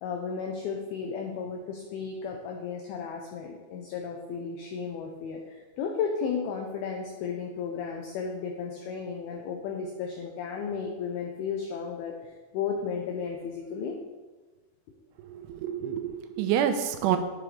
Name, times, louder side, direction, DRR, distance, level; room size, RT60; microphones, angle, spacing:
voice 1, 0.0-14.0, left 6 dB, 90° left, 2 dB, 2.1 m, -34 dB
voice 2, 15.3-17.2, right 9 dB, 90° right, 7 dB, 3.1 m, -28 dB
8.7 x 8.0 x 3.3 m, 1.2 s
omnidirectional pair, 5.3 m